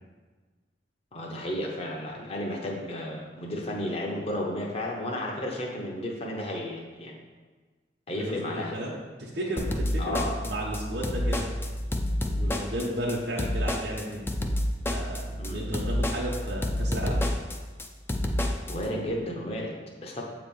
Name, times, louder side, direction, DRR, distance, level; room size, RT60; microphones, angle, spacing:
voice 1, 1.1-7.2 8.1-8.8 10.0-10.4 15.4-15.6 18.7-20.2, left 1 dB, 35° left, -1 dB, 0.8 m, -33 dB
voice 2, 8.2-11.5 12.3-14.3 14.9-17.2, right 1 dB, 65° right, -5 dB, 1.0 m, -33 dB
sound 1, 9.6-18.7, left 1 dB, 15° left, 0.4 m, -29 dB
7.8 x 3.0 x 5.3 m, 1.4 s
head